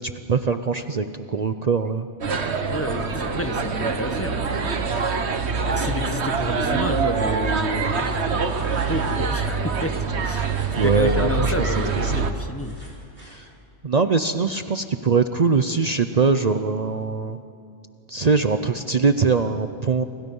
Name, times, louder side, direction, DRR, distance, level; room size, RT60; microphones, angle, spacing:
voice 1, 0.0-2.1 10.4-10.5 10.8-12.1 13.2-13.5 13.8-17.4 18.1-20.0, right 4 dB, 45° right, 9 dB, 0.7 m, -22 dB
sound 1, 2.2-12.3, right 4 dB, 90° right, 1.5 m, -24 dB
voice 2, 2.6-5.1 5.6-12.8, left 1 dB, 15° left, 7 dB, 1.2 m, -31 dB
sound 2, 8.2-9.4 10.2-11.2 11.6-13.4, right 1 dB, 60° right, 5.6 m, -46 dB
29.5 x 26.5 x 5.5 m, 2.4 s
omnidirectional pair, 1.1 m